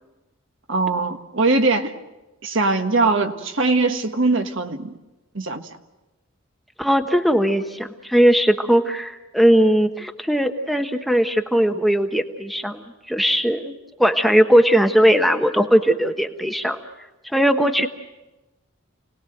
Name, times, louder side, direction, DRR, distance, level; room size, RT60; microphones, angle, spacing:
voice 1, 0.7-1.9 2.4-4.9 5.3-5.6, right 3 dB, 60° right, 6 dB, 1.5 m, -21 dB
voice 2, 6.8-12.8 13.1-13.7 14.0-16.8 17.3-17.9, equal, ahead, 5 dB, 1.1 m, -18 dB
29.5 x 19.0 x 7.8 m, 1.1 s
head